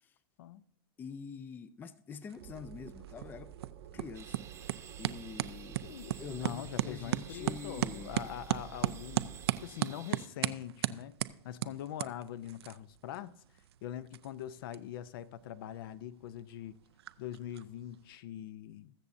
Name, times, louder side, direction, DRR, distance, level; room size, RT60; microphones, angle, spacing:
voice 1, 1.0-3.5 3.9-5.8 6.1-8.2, left 5 dB, 15° left, 0.4 m, -46 dB
sound 1, 2.3-18.2, right 13 dB, 80° right, 0.5 m, -39 dB
sound 2, 2.4-9.7, right 11 dB, 60° right, 1.0 m, -50 dB
sound 3, 4.1-10.3, right 7 dB, 20° right, 0.9 m, -53 dB
voice 2, 5.8-11.1 11.4-13.4 13.8-16.8 17.2-18.9, left 11 dB, 60° left, 0.6 m, -43 dB
21.0 x 7.0 x 2.6 m
supercardioid pair, 140°, 13 cm